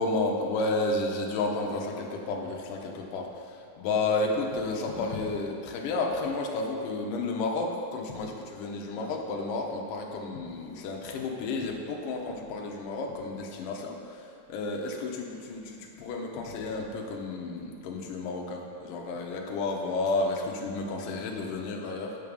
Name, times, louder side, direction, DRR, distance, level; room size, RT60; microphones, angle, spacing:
voice 1, 0.0-22.2, left 3 dB, 70° left, 0 dB, 2.3 m, -31 dB
9.4 x 6.5 x 5.3 m, 2.3 s
omnidirectional pair, 4.4 m